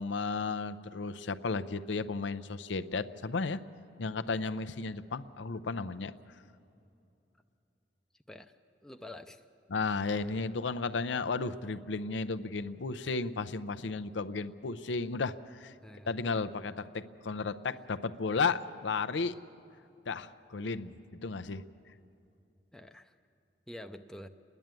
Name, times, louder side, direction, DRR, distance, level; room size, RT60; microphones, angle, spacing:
voice 1, 0.0-3.6 4.0-6.1 9.7-15.7 16.1-19.3 20.1-21.6, left 4 dB, 80° left, 10 dB, 0.6 m, -34 dB
voice 2, 8.1-8.5 8.8-9.4 15.8-16.2 22.7-23.2 23.7-24.3, left 1 dB, 5° left, 6 dB, 0.5 m, -47 dB
28.5 x 11.0 x 9.0 m, 2.7 s
head